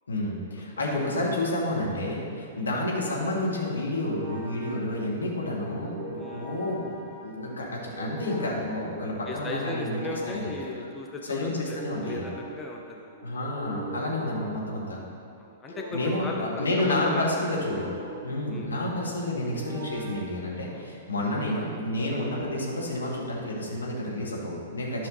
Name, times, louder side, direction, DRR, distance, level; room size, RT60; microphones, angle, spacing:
voice 1, 0.1-10.0 10.3-10.5 11.2-12.3 13.2-15.0 15.9-17.9 18.2-25.1, left 1 dB, 75° left, -3 dB, 1.8 m, -30 dB
sound 1, 3.4-21.2, right 3 dB, 15° right, 1.1 m, -44 dB
voice 2, 6.2-6.5 8.4-8.5 9.3-13.2 15.4-17.7 18.5-18.7 20.7-20.9 25.0-25.1, left 2 dB, 15° left, 0 dB, 0.7 m, -37 dB
11.0 x 5.7 x 3.9 m, 2.5 s
figure-of-eight pair, 105°, 0 cm